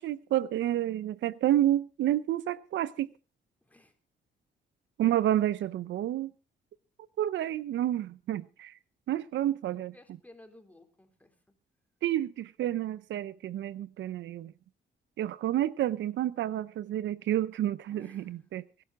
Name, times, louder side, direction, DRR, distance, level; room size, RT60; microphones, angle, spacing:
voice 1, 0.0-3.1 5.0-6.3 7.2-8.7 9.1-9.9 12.0-14.5 15.2-18.8, right 12 dB, 80° right, 0.6 m, -29 dB
voice 2, 3.6-3.9 9.9-11.4 17.9-18.4, left 1 dB, 10° left, 3.6 m, -55 dB
22.5 x 12.0 x 3.6 m
cardioid pair, 90°, 19 cm